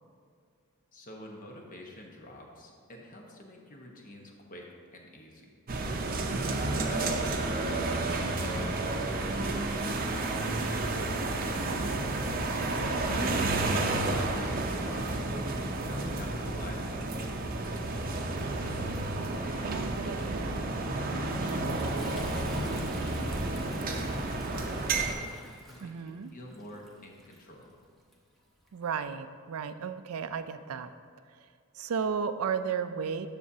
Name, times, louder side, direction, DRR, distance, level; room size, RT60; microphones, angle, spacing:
voice 1, 0.9-5.5 6.2-9.7 10.3-12.0 12.7-18.7 19.4-20.8 21.4-23.4 23.7-25.2 25.7-27.8, left 1 dB, 40° left, 0 dB, 1.1 m, -48 dB
sound 1, 5.7-25.1, right 2 dB, 45° right, 0.6 m, -31 dB
voice 2, 6.3-6.9 12.8-13.5 19.6-20.7 25.8-26.3 28.7-30.9 31.7-33.3, right 6 dB, 90° right, 11 dB, 0.4 m, -35 dB
Toilet flush, 21.2-29.0, right 1 dB, ahead, 0.9 m, -51 dB
10.5 x 6.9 x 2.8 m, 2.1 s
head